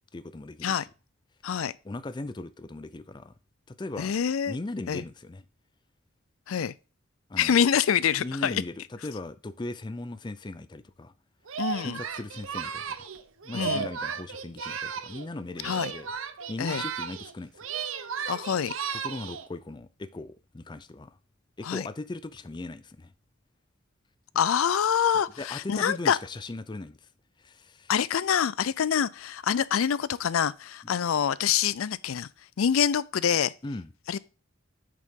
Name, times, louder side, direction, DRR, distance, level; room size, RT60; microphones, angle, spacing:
voice 1, 0.1-0.8 1.8-3.3 3.7-4.1 4.5-5.5 7.3-7.6 8.2-11.1 11.8-13.1 13.4-16.1 16.5-17.7 19.0-21.2 21.6-23.1 25.4-27.1 27.4-27.9 33.6-33.9, left 2 dB, 20° left, 0.4 m, -38 dB
voice 2, 1.4-1.7 4.0-4.6 4.9-5.0 6.5-6.7 7.4-8.6 11.6-12.0 13.5-13.9 15.6-15.9 16.6-16.8 18.3-18.7 21.6-21.9 24.4-26.2 27.9-32.3 32.6-33.5 34.1-34.2, left 8 dB, 90° left, 0.4 m, -26 dB
Singing, 11.5-15.3 15.6-17.3 17.6-19.5, right 6 dB, 80° right, 0.8 m, -34 dB
8.5 x 6.7 x 3.7 m
head